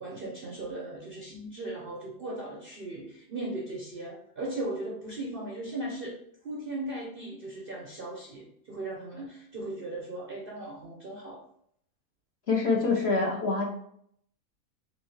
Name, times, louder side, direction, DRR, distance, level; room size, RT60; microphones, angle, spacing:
voice 1, 0.0-6.1 6.4-11.4, right 2 dB, 50° right, -2 dB, 0.7 m, -37 dB
voice 2, 12.5-13.7, left 4 dB, 50° left, -2 dB, 0.9 m, -25 dB
4.3 x 3.4 x 3.1 m, 0.68 s
omnidirectional pair, 1.7 m